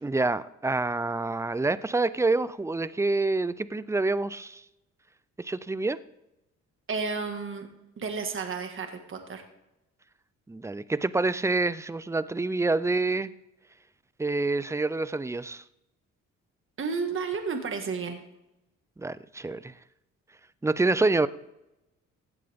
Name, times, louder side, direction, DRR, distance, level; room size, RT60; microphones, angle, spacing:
voice 1, 0.0-4.6 5.4-6.0 10.5-13.3 14.2-15.6 19.0-19.7 20.6-21.3, right 3 dB, 10° right, 0.5 m, -27 dB
voice 2, 6.9-7.7 8.0-9.4 16.8-18.2, right 5 dB, 45° right, 1.8 m, -32 dB
16.5 x 10.5 x 3.6 m
cardioid pair, 90°, 30 cm